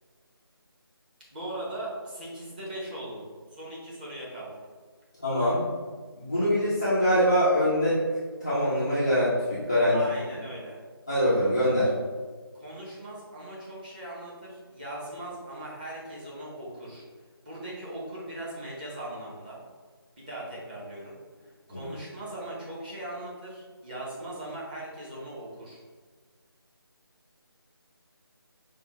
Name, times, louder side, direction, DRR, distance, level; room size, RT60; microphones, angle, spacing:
voice 1, 1.3-4.6 9.9-10.8 12.5-17.0 17.4-19.6 20.2-21.2 21.4-25.8, right 1 dB, 20° right, -6 dB, 0.7 m, -39 dB
voice 2, 5.2-5.7 6.1-8.0 8.4-10.0 11.1-11.9 21.7-21.9, equal, 10° left, -14 dB, 0.3 m, -24 dB
4.9 x 2.1 x 3.0 m, 1.4 s
figure-of-eight pair, 160°, 13 cm